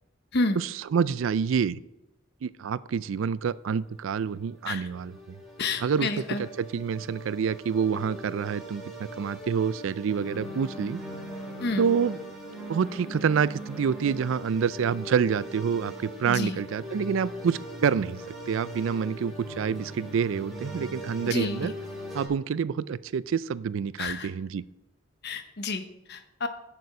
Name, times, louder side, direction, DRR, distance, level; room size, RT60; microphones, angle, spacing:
voice 1, 0.6-1.8 2.4-5.4 5.8-11.0 11.8-12.2 12.7-21.7 22.1-24.6, right 6 dB, 70° right, 18 dB, 0.4 m, -27 dB
sound 1, 3.8-22.3, equal, ahead, 2.7 m, -40 dB
voice 2, 5.6-6.4 11.6-11.9 16.3-16.6 21.2-21.7 24.0-24.3 25.2-26.5, left 3 dB, 55° left, 9 dB, 0.9 m, -30 dB
10.5 x 6.8 x 4.7 m, 0.93 s
head